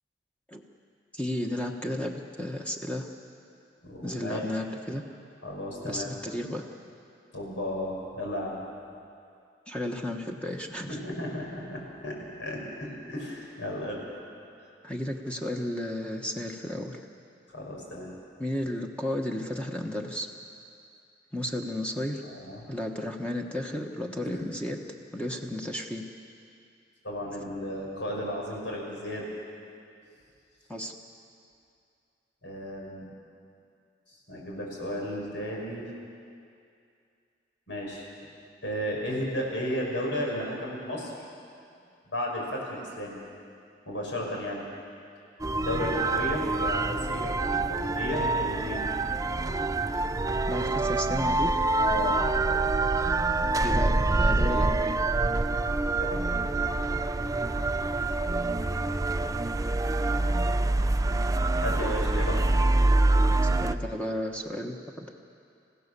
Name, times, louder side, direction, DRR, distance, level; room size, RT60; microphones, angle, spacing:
voice 1, 1.1-3.1 4.0-5.0 5.8-6.6 9.7-11.0 14.8-17.0 18.4-20.3 21.3-22.2 22.7-24.8 25.1-26.1 30.7-30.9 50.5-51.5 53.6-55.0 63.6-65.1, left 1 dB, 5° left, 1 dB, 1.3 m, -33 dB
voice 2, 3.8-4.4 5.4-6.1 7.3-8.6 10.9-14.0 17.5-18.1 22.2-22.6 24.2-24.5 27.0-29.3 32.4-33.1 34.3-35.9 37.7-38.1 38.6-41.1 42.1-43.2 43.9-44.7 45.5-48.8 51.8-52.2 56.0-56.3 61.6-62.4, left 1 dB, 85° left, -2 dB, 5.8 m, -34 dB
sound 1, 45.4-63.7, right 2 dB, 20° right, 0.4 m, -26 dB
28.5 x 15.5 x 6.9 m, 2.5 s
head